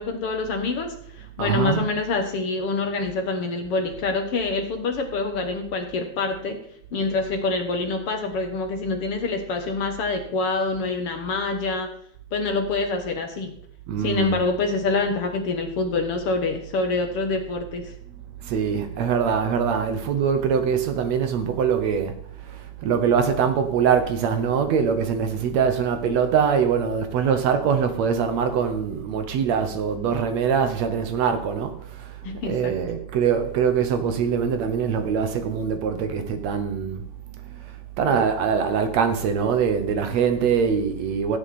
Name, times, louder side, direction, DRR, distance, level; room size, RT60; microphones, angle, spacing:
voice 1, 0.0-6.6 6.9-11.9 12.3-13.5 14.0-17.9 32.2-32.7, left 3 dB, 55° left, 1.9 m, -26 dB
voice 2, 1.4-1.9 13.9-14.4 18.4-22.1 22.4-32.2 32.5-37.0 38.0-41.4, right 7 dB, 70° right, 2.1 m, -23 dB
14.5 x 9.6 x 4.2 m
omnidirectional pair, 3.5 m